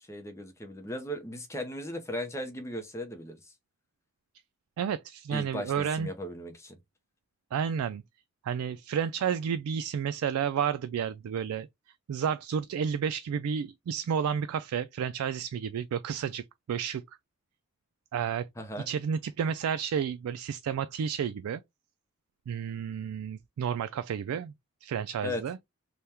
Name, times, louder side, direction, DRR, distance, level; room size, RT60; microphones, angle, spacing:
voice 1, 0.0-3.5 5.3-6.8 18.6-18.9 25.2-25.4, left 1 dB, 15° left, 0.6 m, -37 dB
voice 2, 4.8-6.1 7.5-8.0 8.4-11.7 12.1-17.0 18.1-18.4 18.9-21.6 22.5-24.5 24.8-25.6, right 7 dB, 90° right, 0.3 m, -31 dB
3.4 x 2.3 x 4.2 m
head